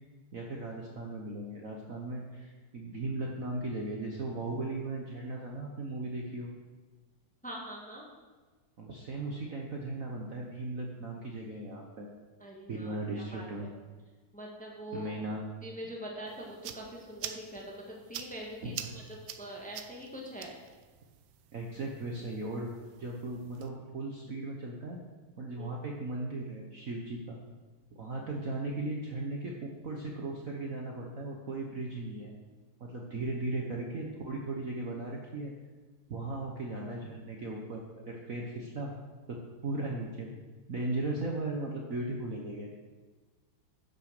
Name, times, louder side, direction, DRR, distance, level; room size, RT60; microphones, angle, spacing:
voice 1, 0.3-6.5 8.8-12.1 12.7-13.7 14.9-15.4 18.6-18.7 21.5-22.7 23.0-25.0 25.4-27.4 27.9-32.3 32.8-35.5 36.1-38.9 39.3-40.3 40.7-42.7, right 2 dB, 50° right, 0 dB, 1.2 m, -37 dB
voice 2, 7.4-8.0 12.4-13.7 14.3-15.1 15.6-20.5 25.6-25.8, equal, 5° left, -1 dB, 1.4 m, -43 dB
sound 1, 16.3-23.7, right 10 dB, 75° right, 1.3 m, -47 dB
10.5 x 6.4 x 6.7 m, 1.3 s
omnidirectional pair, 2.3 m